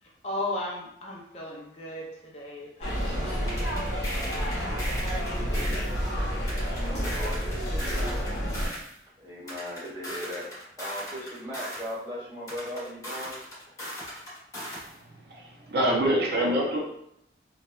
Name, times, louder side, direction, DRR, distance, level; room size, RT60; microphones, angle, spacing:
voice 1, 0.0-5.8, left 1 dB, 35° left, -3 dB, 0.4 m, -37 dB
sound 1, 2.8-8.7, equal, 65° left, 0.8 m, -29 dB
sound 2, 3.5-5.9 6.5-8.9 9.5-11.9 12.5-14.9, equal, 20° left, 0.9 m, -38 dB
voice 2, 6.8-8.4 9.2-13.4, equal, 15° right, -9 dB, 1.1 m, -38 dB
voice 3, 14.7-16.8, right 1 dB, 55° right, -2 dB, 0.5 m, -26 dB
3.0 x 2.2 x 2.2 m, 0.75 s
head